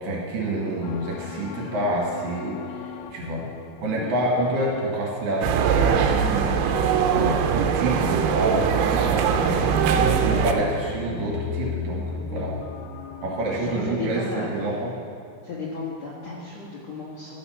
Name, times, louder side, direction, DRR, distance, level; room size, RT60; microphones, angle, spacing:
voice 1, 0.0-2.6 3.1-3.5 3.8-9.7 10.2-12.5 13.2-14.9, right 1 dB, 65° right, -3 dB, 3.1 m, -27 dB
sound 1, 0.8-13.9, left 6 dB, 85° left, 2.7 m, -38 dB
sound 2, 5.4-10.5, right 7 dB, 85° right, 3.0 m, -21 dB
voice 2, 12.2-12.5 13.2-14.5 15.4-17.4, left 3 dB, 65° left, -7 dB, 1.7 m, -35 dB
13.5 x 6.9 x 5.6 m, 2.3 s
omnidirectional pair, 5.2 m